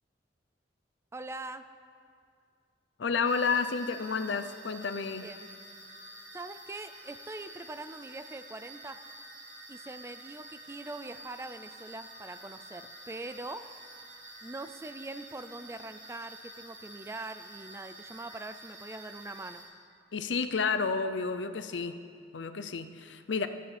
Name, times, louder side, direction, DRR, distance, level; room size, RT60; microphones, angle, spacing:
voice 1, 1.1-1.6 5.2-5.5 6.3-9.0 9.7-13.7 14.4-19.6, right 2 dB, 15° right, 10 dB, 0.3 m, -42 dB
voice 2, 3.0-5.3 20.1-22.0 22.3-23.5, left 5 dB, 85° left, 10 dB, 0.6 m, -31 dB
sound 1, 3.2-19.6, right 1 dB, 70° right, 3.7 m, -49 dB
15.0 x 13.0 x 3.4 m, 2.3 s
head